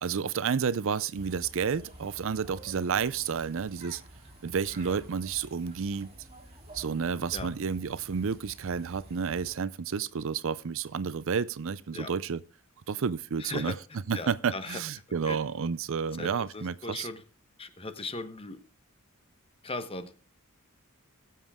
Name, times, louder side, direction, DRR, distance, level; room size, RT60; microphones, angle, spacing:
voice 1, 0.0-4.0 4.4-6.1 6.7-12.4 12.9-13.7 14.1-17.1, right 6 dB, 65° right, 0.5 m, -31 dB
sound 1, 1.1-9.6, right 1 dB, 30° right, 2.6 m, -50 dB
voice 2, 13.4-13.8 14.1-14.8 15.3-15.4 16.2-17.2 17.6-18.6 19.6-20.1, left 2 dB, 25° left, 1.1 m, -38 dB
20.0 x 7.5 x 3.6 m
head